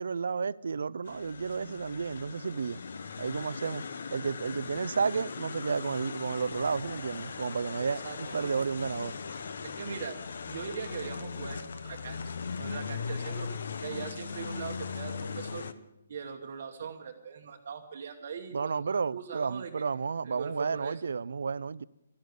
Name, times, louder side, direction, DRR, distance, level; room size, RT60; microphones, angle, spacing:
voice 1, 0.0-2.8 3.2-3.8 4.1-9.1 18.5-21.8, right 5 dB, 70° right, 0.4 m, -32 dB
sound 1, 1.0-15.7, left 5 dB, 55° left, 0.8 m, -39 dB
voice 2, 7.8-8.5 9.6-10.2 10.5-12.2 12.6-15.7 16.1-19.7 20.2-21.0, right 6 dB, 40° right, 1.1 m, -41 dB
13.0 x 11.5 x 8.1 m
hypercardioid pair, 175°, 0 cm